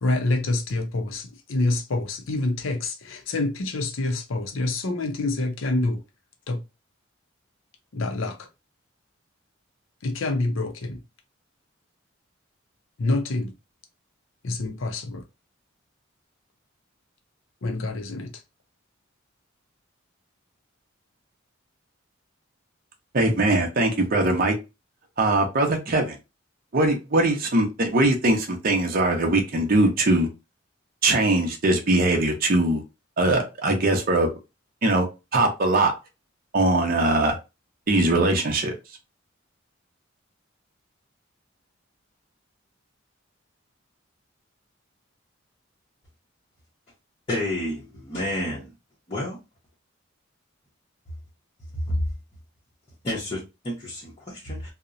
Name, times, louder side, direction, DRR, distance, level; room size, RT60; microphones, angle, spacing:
voice 1, 0.0-6.0 6.5-6.6 7.9-8.5 10.0-11.0 13.0-13.5 14.4-15.2 17.6-18.3, left 2 dB, 75° left, 0.6 m, -27 dB
voice 2, 23.1-24.5 25.2-26.2 26.7-30.3 31.0-32.8 33.2-34.3 34.8-35.1 35.3-35.9 36.5-37.4 37.9-38.7, right 2 dB, 45° right, 0.6 m, -21 dB
voice 3, 47.3-48.7 49.1-49.4 51.9-52.0 53.0-54.7, left 1 dB, 30° left, 0.7 m, -29 dB
2.8 x 2.0 x 2.4 m
head